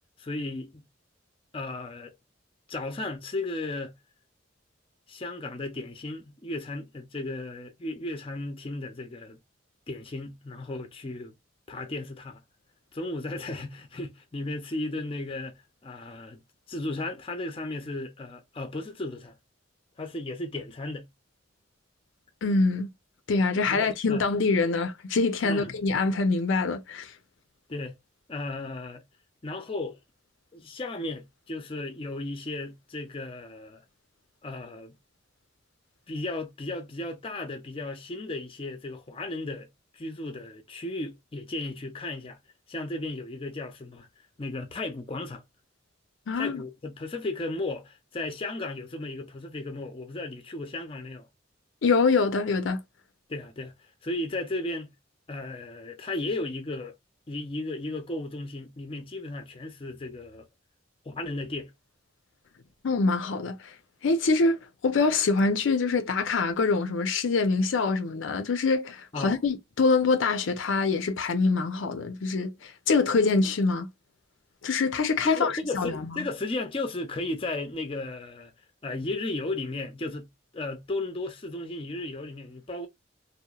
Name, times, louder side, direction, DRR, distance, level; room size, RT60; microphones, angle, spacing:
voice 1, 0.2-0.8 1.5-2.1 2.7-4.0 5.1-9.4 9.9-11.3 11.7-12.4 12.9-16.4 16.7-19.3 20.0-21.1 23.7-24.2 25.4-25.7 27.7-27.9 28.3-29.0 29.4-30.0 30.5-33.8 34.4-35.0 36.1-39.7 39.9-42.4 42.7-44.1 44.4-45.4 46.3-51.3 53.3-53.7 54.0-54.9 55.3-56.9 57.3-60.5 61.1-61.7 69.1-69.4 75.2-78.5 78.8-80.3 80.5-82.9, left 2 dB, 30° left, 0.5 m, -35 dB
voice 2, 22.4-22.9 23.3-27.1 46.3-46.6 51.8-52.8 62.8-63.7 64.0-73.9 74.6-76.3, left 4 dB, 80° left, 0.5 m, -25 dB
2.8 x 2.0 x 2.3 m
head